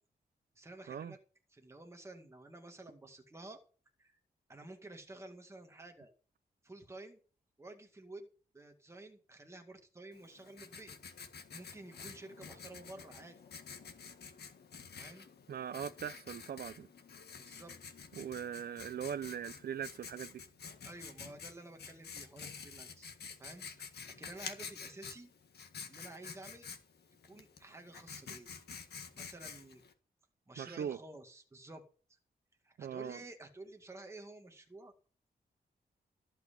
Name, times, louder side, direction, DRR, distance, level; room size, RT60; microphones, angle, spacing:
voice 1, 0.6-1.2 1.5-3.6 4.0-4.2 4.5-6.1 6.6-7.2 7.6-8.3 8.5-10.9 11.5-13.4 14.9-15.3 17.4-17.7 20.8-23.1 23.4-23.9 24.2-25.3 25.9-26.7 27.2-28.5 29.1-29.8 30.5-31.8 32.1-32.2 32.6-34.9, right 2 dB, 15° right, 2.1 m, -51 dB
Writing, 10.1-29.9, left 6 dB, 85° left, 1.8 m, -49 dB
voice 2, 15.5-16.9 18.2-20.4 30.6-31.0 32.8-33.2, right 8 dB, 70° right, 0.6 m, -40 dB
14.5 x 5.8 x 8.5 m
wide cardioid pair, 170°, 16 cm